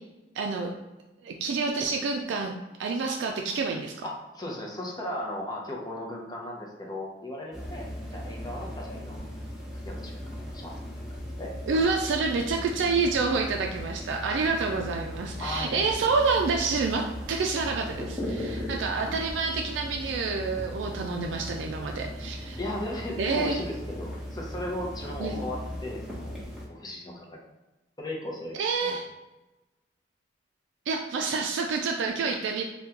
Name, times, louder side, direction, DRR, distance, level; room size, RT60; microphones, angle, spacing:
voice 1, 0.3-0.7 1.2-2.5 2.8-3.9 11.7-22.6 23.2-23.6 25.2-25.3 28.5-29.1 30.9-32.6, right 4 dB, 90° right, 2 dB, 0.3 m, -28 dB
voice 2, 4.0-9.3 9.8-10.8 11.4-11.5 15.4-15.8 22.6-26.3 26.7-27.4 28.0-28.6 28.8-29.0, left 1 dB, 25° left, -1 dB, 0.6 m, -36 dB
sound 1, 7.5-26.7, left 1 dB, ahead, 0.9 m, -38 dB
3.5 x 2.2 x 2.8 m, 1.1 s
head